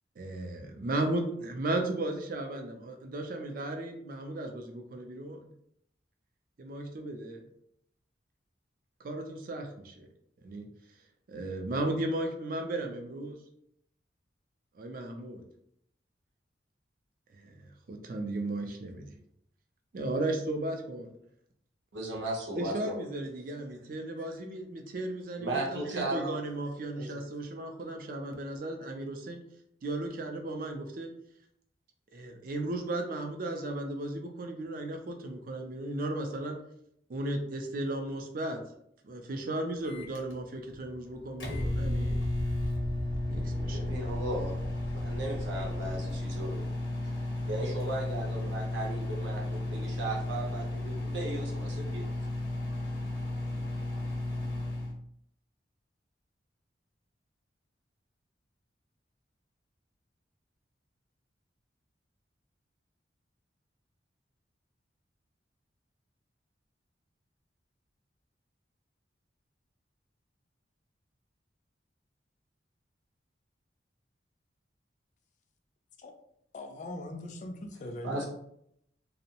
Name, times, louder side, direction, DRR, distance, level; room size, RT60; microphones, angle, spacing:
voice 1, 0.2-5.5 6.6-7.4 9.0-10.1 10.4-10.7 11.3-13.4 14.8-15.4 17.3-19.2 19.9-21.1 22.5-29.4 29.8-31.1 32.1-36.6 37.1-38.6 39.0-42.2 43.3-43.9, right 2 dB, 50° right, 4 dB, 0.4 m, -35 dB
voice 2, 21.9-23.0 25.4-26.4 26.9-27.2 43.7-44.6 44.9-46.7 47.0-47.1 47.5-52.1 78.0-78.3, right 1 dB, 85° right, -1 dB, 0.8 m, -36 dB
Microwave oven, 39.8-54.9, left 2 dB, 85° left, 0.7 m, -34 dB
sound 1, 41.5-46.8, equal, 25° right, 0.8 m, -38 dB
voice 3, 76.5-78.2, left 1 dB, 40° left, 5 dB, 0.3 m, -40 dB
2.6 x 2.0 x 2.8 m, 0.72 s
head